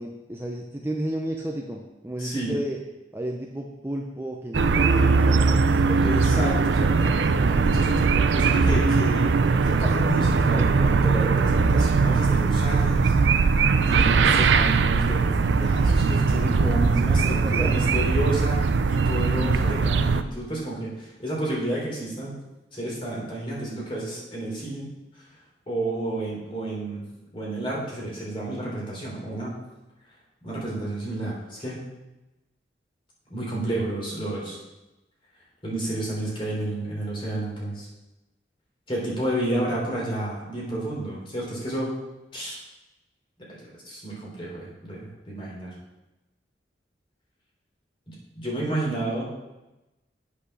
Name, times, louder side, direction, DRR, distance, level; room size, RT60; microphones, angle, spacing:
voice 1, 0.0-2.8 3.1-6.0 6.3-6.7 7.3-7.8 17.2-17.9, right 1 dB, 15° right, 0 dB, 0.6 m, -33 dB
voice 2, 2.2-2.5 6.0-7.3 7.6-9.3 9.6-13.1 13.8-22.3 22.7-24.9 25.7-27.0 27.3-29.5 30.4-31.8 33.3-34.6 35.6-37.9 38.9-41.9 42.3-42.6 43.8-45.7 48.1-49.2, right 1 dB, 30° left, -4 dB, 3.4 m, -30 dB
sound 1, 4.5-20.2, right 4 dB, 80° right, 0.5 m, -20 dB
8.4 x 5.6 x 6.2 m, 1.0 s
head